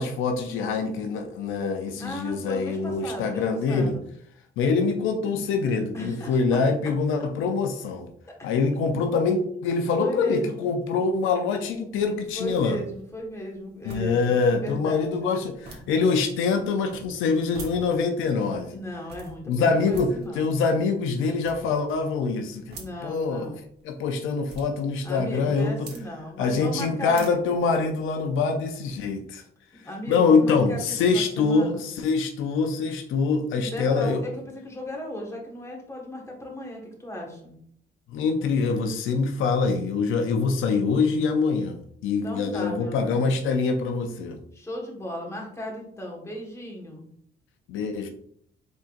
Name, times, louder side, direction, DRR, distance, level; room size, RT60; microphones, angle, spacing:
voice 1, 0.0-4.0 4.6-8.1 8.4-12.8 13.9-18.8 19.5-23.5 23.8-25.9 26.4-29.4 30.1-34.2 38.1-44.4 47.7-48.1, left 4 dB, 85° left, 6 dB, 0.5 m, -24 dB
voice 2, 2.0-4.0 5.9-6.4 10.0-10.7 12.3-15.1 18.7-20.5 22.7-23.6 25.0-27.6 29.8-31.8 33.5-37.5 42.2-43.2 44.5-47.1, left 1 dB, 15° left, -1 dB, 1.5 m, -36 dB
sound 1, 11.9-28.4, right 3 dB, 55° right, 1.2 m, -49 dB
4.3 x 3.7 x 2.5 m, 0.66 s
cardioid pair, 90°, 20 cm